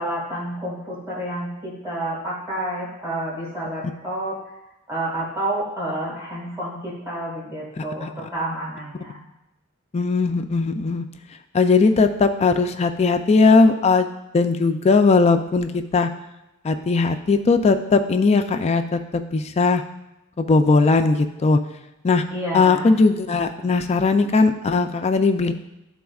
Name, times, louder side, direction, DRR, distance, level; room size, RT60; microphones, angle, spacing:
voice 1, 0.0-4.6 4.9-9.2 22.3-22.9, right 1 dB, 15° right, -6 dB, 1.7 m, -29 dB
voice 2, 9.9-11.0 11.5-14.1 14.3-16.1 16.6-19.8 20.4-21.6 22.0-22.2 22.5-25.5, left 4 dB, 30° left, 7 dB, 0.3 m, -18 dB
12.5 x 4.2 x 2.3 m, 0.95 s
head